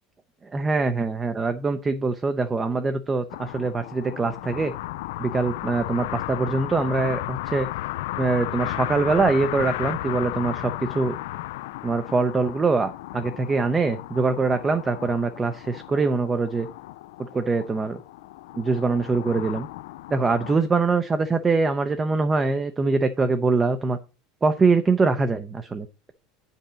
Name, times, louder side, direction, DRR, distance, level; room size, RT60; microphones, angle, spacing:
voice 1, 0.5-4.7 5.2-7.7 8.2-11.2 11.8-16.7 17.2-18.0 18.6-19.7 20.1-24.0 24.4-26.1, right 4 dB, 10° right, 9 dB, 0.5 m, -23 dB
sound 1, 3.3-20.6, left 17 dB, 75° left, 0.3 m, -34 dB
8.7 x 5.4 x 5.0 m, 0.30 s
cardioid pair, 175°, 0 cm